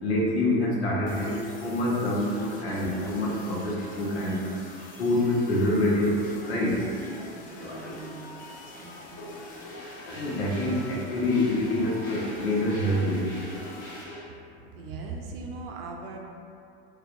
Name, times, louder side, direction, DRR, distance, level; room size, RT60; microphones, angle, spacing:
voice 1, 0.0-4.4 5.0-6.2 6.4-6.8 7.6-7.9 10.1-13.4, left 1 dB, 75° left, -4 dB, 0.9 m, -26 dB
sound 1, 1.1-14.0, left 2 dB, 25° left, 0.5 m, -46 dB
sound 2, 7.4-14.2, equal, 40° left, 1.3 m, -45 dB
voice 2, 7.4-9.3 14.7-16.2, right 4 dB, 60° right, 1 dB, 0.5 m, -40 dB
3.2 x 2.9 x 2.5 m, 2.5 s
hypercardioid pair, 90°, 32 cm